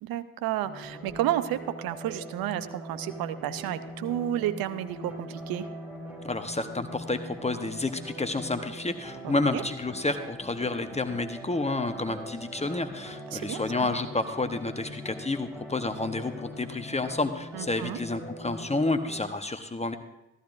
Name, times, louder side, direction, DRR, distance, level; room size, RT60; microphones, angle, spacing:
voice 1, 0.0-5.7 9.2-9.6 13.3-13.9 17.5-18.0, right 12 dB, 70° right, 12 dB, 0.8 m, -31 dB
sound 1, 0.6-19.3, equal, 5° right, 4.7 m, -42 dB
voice 2, 6.2-20.0, left 2 dB, 15° left, 7 dB, 1.0 m, -30 dB
14.0 x 14.0 x 2.6 m, 0.95 s
hypercardioid pair, 45°, 37 cm